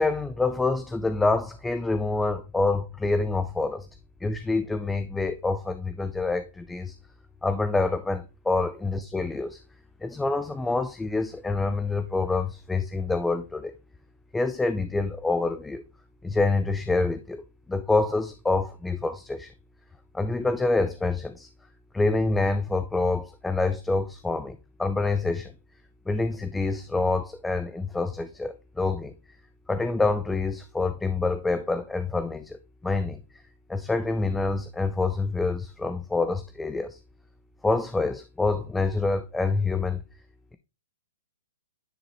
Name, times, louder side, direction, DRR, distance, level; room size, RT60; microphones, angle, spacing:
voice 1, 0.0-3.9 4.2-6.9 7.4-9.6 10.0-13.7 14.3-15.8 16.2-17.4 17.7-19.5 20.1-21.5 21.9-25.5 26.1-29.1 29.7-32.6 32.8-33.2 33.7-37.0 37.6-40.0, left 3 dB, 5° left, 0.4 m, -26 dB
9.7 x 3.8 x 3.0 m
hypercardioid pair, 145°, 0 cm